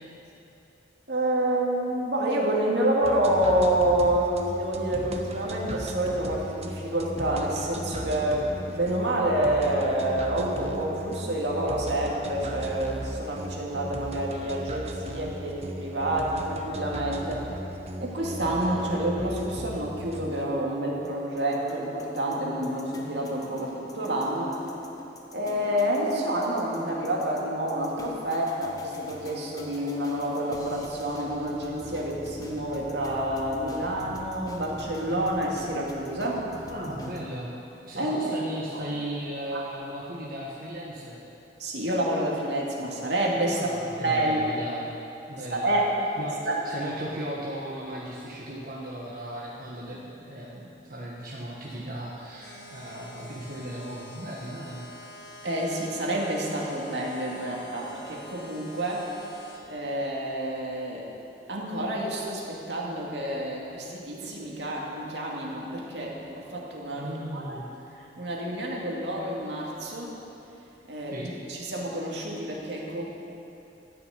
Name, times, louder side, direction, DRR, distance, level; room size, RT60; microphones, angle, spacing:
voice 1, 1.1-17.5 18.0-24.6 25.3-36.5 38.0-38.3 38.7-38.8 39.5-39.6 41.6-43.7 44.0-44.4 45.4-45.9 46.4-46.7 55.4-61.1 61.5-67.6 68.0-70.2 70.9-73.1, right 1 dB, 75° right, -3 dB, 2.3 m, -28 dB
sound 1, 3.0-20.4, right 1 dB, 35° right, 0.9 m, -37 dB
sound 2, 21.0-37.3, left 1 dB, 20° left, 1.1 m, -45 dB
voice 2, 36.7-37.6 37.8-41.2 43.5-45.0 45.3-45.8 46.2-46.4 46.6-54.9 67.0-67.7 71.1-71.3, right 1 dB, 55° right, -5 dB, 1.4 m, -36 dB
sound 3, 52.4-59.6, left 1 dB, 60° left, 1.9 m, -47 dB
14.0 x 6.2 x 9.2 m, 2.9 s
head